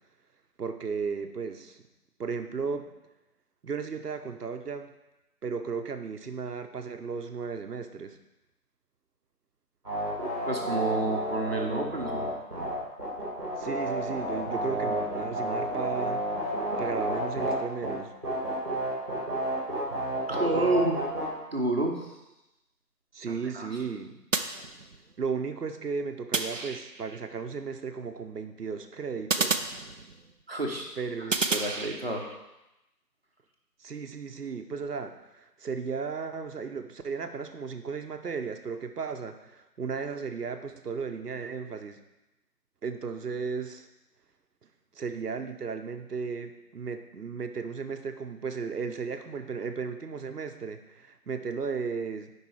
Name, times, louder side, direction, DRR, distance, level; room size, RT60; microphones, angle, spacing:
voice 1, 0.6-1.8 2.2-2.9 3.6-4.9 5.4-8.2 13.6-18.1 23.1-24.2 25.2-29.6 31.0-31.4 33.8-42.0 42.8-43.9 44.9-52.3, right 5 dB, 70° right, 7 dB, 0.9 m, -35 dB
sound 1, 9.8-17.5 17.8-17.9 18.2-21.3, right 1 dB, 15° right, 1.6 m, -31 dB
voice 2, 10.5-12.3 20.3-21.0 21.5-22.0 23.3-23.7 30.5-30.9 31.3-32.2, right 2 dB, 40° right, 0 dB, 1.0 m, -29 dB
sound 2, 24.3-25.2 26.3-27.2 29.3-30.4 31.3-32.4, right 4 dB, 55° right, 0.5 m, -31 dB
7.3 x 5.2 x 4.8 m, 0.97 s
figure-of-eight pair, 175°, 48 cm